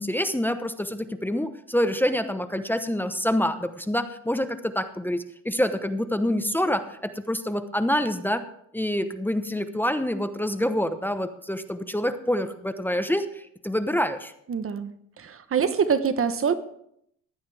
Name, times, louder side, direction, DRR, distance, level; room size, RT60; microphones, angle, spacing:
voice 1, 0.0-8.4 8.7-14.3, equal, 5° left, 9 dB, 0.9 m, -26 dB
voice 2, 14.5-14.9 15.2-16.5, right 6 dB, 45° right, 11 dB, 1.0 m, -24 dB
15.5 x 11.0 x 3.4 m, 0.71 s
cardioid pair, 90°, 30 cm